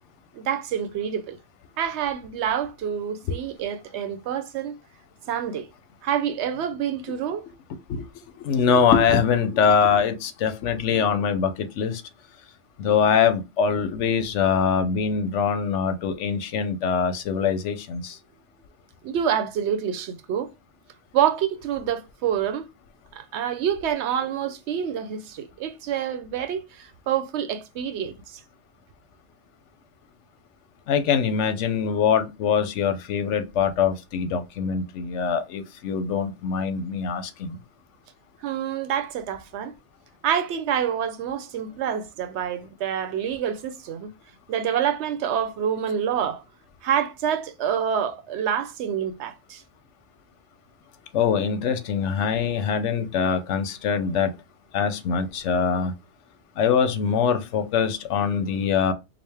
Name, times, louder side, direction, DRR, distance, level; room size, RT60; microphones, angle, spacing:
voice 1, 0.3-1.4 1.8-4.8 5.3-5.7 6.0-7.4 19.0-20.5 21.1-22.7 23.1-28.4 38.4-39.7 40.2-44.1 44.5-46.4 46.8-49.6, right 9 dB, 75° right, 0.9 m, -27 dB
voice 2, 8.4-12.0 12.8-18.2 30.9-37.6 51.1-54.3 54.7-55.9 56.6-58.9, left 6 dB, 85° left, 1.0 m, -23 dB
5.0 x 2.1 x 3.3 m
omnidirectional pair, 1.2 m